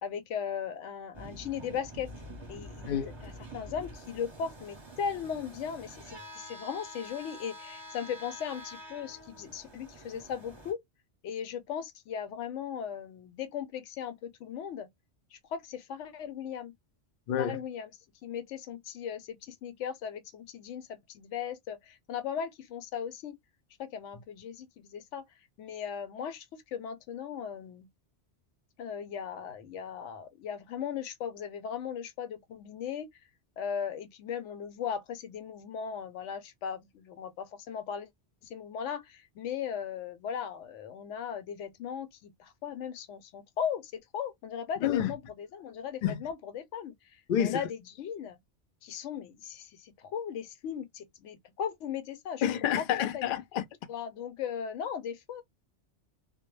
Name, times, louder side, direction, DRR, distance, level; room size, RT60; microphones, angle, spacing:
voice 1, 0.0-2.1 2.5-10.8 11.2-14.9 15.3-16.7 17.4-17.9 18.2-23.4 23.8-25.2 25.6-27.9 28.8-33.1 33.6-38.1 38.4-48.4 48.8-52.4 52.9-53.2 53.9-55.4, left 8 dB, 85° left, 0.9 m, -38 dB
sound 1, 1.1-10.7, equal, 30° right, 0.7 m, -47 dB
voice 2, 17.3-17.6 44.8-45.1 46.0-46.2 47.3-47.7 52.4-53.6, left 9 dB, 60° left, 0.6 m, -28 dB
2.2 x 2.0 x 3.0 m
omnidirectional pair, 1.2 m